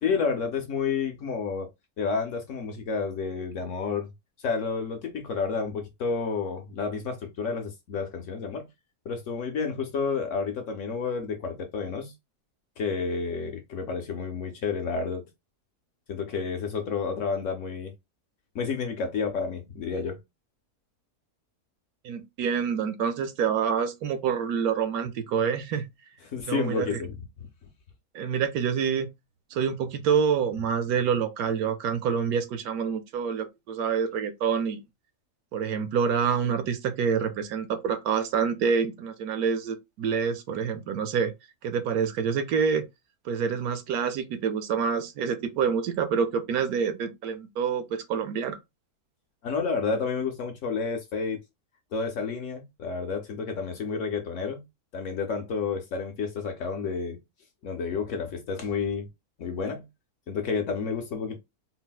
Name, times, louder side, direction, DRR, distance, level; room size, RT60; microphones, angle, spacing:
voice 1, 0.0-1.7 2.0-4.1 4.4-8.7 9.1-12.1 12.8-15.3 16.1-17.9 18.5-20.2 26.3-27.2 49.4-51.4 51.9-54.6 54.9-57.2 57.6-59.1 59.4-59.9 60.3-61.4, left 5 dB, 65° left, 0.8 m, -30 dB
voice 2, 22.0-25.9 26.5-27.0 28.1-29.1 29.5-34.8 35.5-41.3 41.6-42.8 43.2-48.6, right 6 dB, 75° right, 1.0 m, -27 dB
4.0 x 2.0 x 2.2 m
omnidirectional pair, 1.6 m